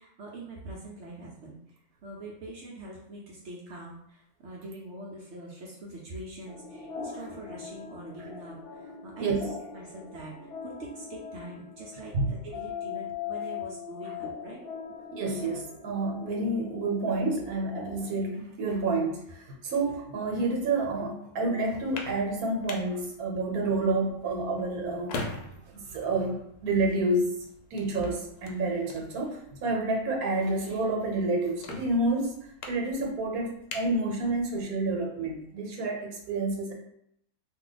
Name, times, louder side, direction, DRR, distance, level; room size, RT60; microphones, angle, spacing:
voice 1, 0.0-1.8 2.0-9.4 9.7-14.6, right 1 dB, 65° right, -3 dB, 0.8 m, -44 dB
sound 1, 6.5-18.2, left 6 dB, 65° left, 0.7 m, -41 dB
voice 2, 15.1-25.4 25.8-26.4 26.6-27.3 27.7-36.7, right 2 dB, 80° right, 1 dB, 1.2 m, -29 dB
sound 2, 21.6-34.7, left 3 dB, 90° left, 1.1 m, -45 dB
2.6 x 2.2 x 3.8 m, 0.73 s
omnidirectional pair, 1.5 m